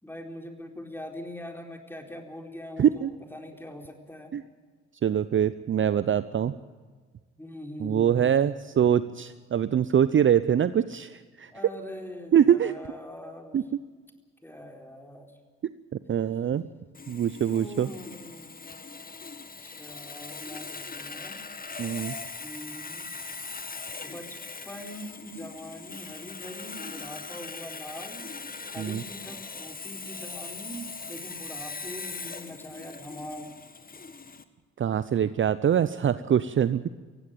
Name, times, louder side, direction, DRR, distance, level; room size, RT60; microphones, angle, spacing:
voice 1, 0.0-4.3 7.4-8.4 11.5-13.6 14.4-15.4 17.5-18.8 19.6-21.4 22.4-23.1 24.0-28.2 28.7-33.5, equal, 5° left, 3 dB, 4.3 m, -42 dB
voice 2, 2.8-3.1 4.3-4.4 5.0-6.5 7.8-11.5 12.3-12.7 13.5-13.6 16.1-16.7 17.1-17.9 21.8-22.2 28.8-29.0 34.8-36.9, right 9 dB, 35° right, 15 dB, 0.7 m, -24 dB
Sawing, 16.9-34.4, left 4 dB, 25° left, 1.7 m, -40 dB
19.0 x 16.0 x 9.1 m, 1.5 s
hypercardioid pair, 50°, 34 cm